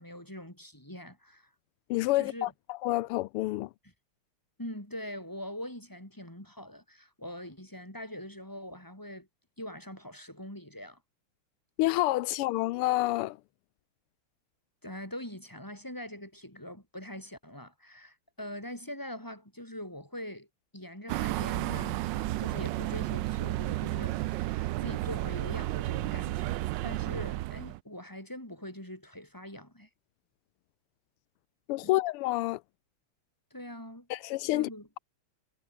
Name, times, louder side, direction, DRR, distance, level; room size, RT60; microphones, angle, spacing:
voice 1, 0.0-1.5 2.1-2.5 4.6-9.3 9.6-11.0 14.8-20.5 20.7-29.9 31.8-31.9 33.5-34.1 34.5-34.9, left 1 dB, 10° left, 6.7 m, -43 dB
voice 2, 1.9-2.5 2.8-3.7 11.8-13.4 31.7-32.6 34.1-34.7, left 18 dB, 85° left, 1.5 m, -28 dB
sound 1, 21.1-27.8, right 17 dB, 75° right, 1.0 m, -32 dB
omnidirectional pair, 2.4 m